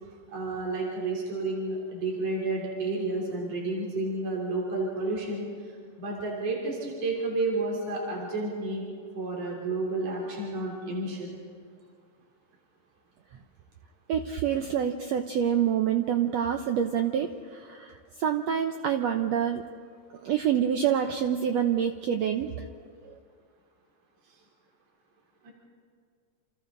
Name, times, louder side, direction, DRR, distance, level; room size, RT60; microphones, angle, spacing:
voice 1, 0.3-5.5 6.0-8.8 9.1-11.3 25.4-25.5, right 2 dB, 45° right, -2 dB, 4.3 m, -31 dB
voice 2, 14.1-19.6 20.2-22.5, right 9 dB, 90° right, 6 dB, 1.5 m, -27 dB
28.0 x 28.0 x 3.9 m, 2.1 s
omnidirectional pair, 4.0 m